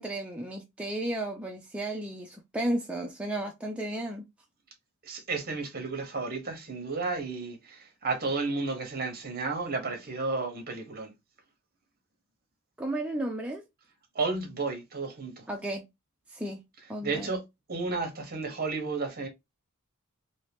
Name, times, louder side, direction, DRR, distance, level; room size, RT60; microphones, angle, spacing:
voice 1, 0.0-4.2 12.8-13.6 15.5-15.8 16.3-16.6 16.9-17.3, right 1 dB, 5° right, 0.3 m, -33 dB
voice 2, 5.0-11.1 14.1-15.5 17.0-17.4 17.7-19.3, right 3 dB, 45° right, 0.9 m, -32 dB
2.7 x 2.7 x 3.4 m
head